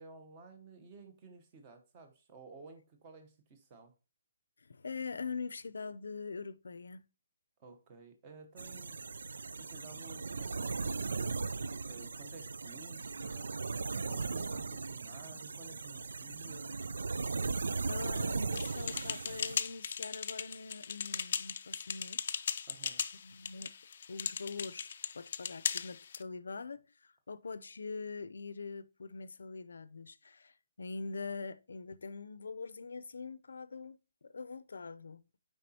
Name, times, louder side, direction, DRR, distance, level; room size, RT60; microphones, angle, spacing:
voice 1, 0.0-3.9 7.6-9.0 9.6-13.6 14.0-16.8 22.7-23.0, right 4 dB, 20° right, 0.9 m, -54 dB
voice 2, 4.6-7.0 17.9-22.4 23.2-23.7 24.1-24.9 25.1-35.2, left 4 dB, 85° left, 0.6 m, -43 dB
sound 1, 8.6-19.6, right 4 dB, 85° right, 0.4 m, -38 dB
sound 2, 18.5-26.2, left 7 dB, 40° left, 0.4 m, -38 dB
7.7 x 4.9 x 2.8 m
hypercardioid pair, 175°, 0 cm